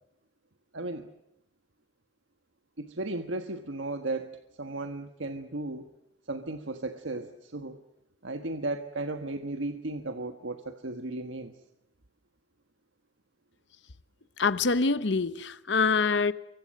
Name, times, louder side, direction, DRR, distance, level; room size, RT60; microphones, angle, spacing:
voice 1, 0.7-1.1 2.8-4.3 4.6-5.9 6.3-7.8 8.2-11.5, right 2 dB, 85° right, 1.4 m, -35 dB
voice 2, 14.4-16.3, left 4 dB, 70° left, 0.9 m, -25 dB
27.0 x 24.5 x 6.6 m
head